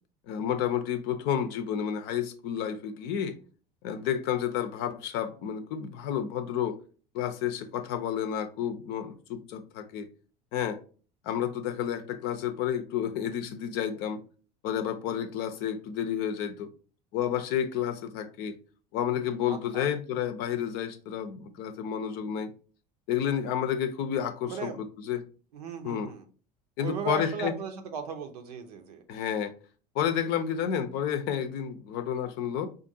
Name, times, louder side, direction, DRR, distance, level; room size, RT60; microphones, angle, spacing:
voice 1, 0.3-3.4 3.8-6.8 7.1-10.1 10.5-10.8 11.2-14.2 14.6-16.7 17.1-18.6 18.9-22.5 23.1-25.2 25.8-26.1 26.8-27.5 29.1-29.5 29.9-32.7, left 9 dB, 50° left, 0.6 m, -30 dB
voice 2, 19.5-19.9 24.5-24.9 25.5-26.2 26.8-29.0, right 7 dB, 70° right, 0.7 m, -37 dB
5.0 x 2.5 x 2.7 m
figure-of-eight pair, 65°, 21 cm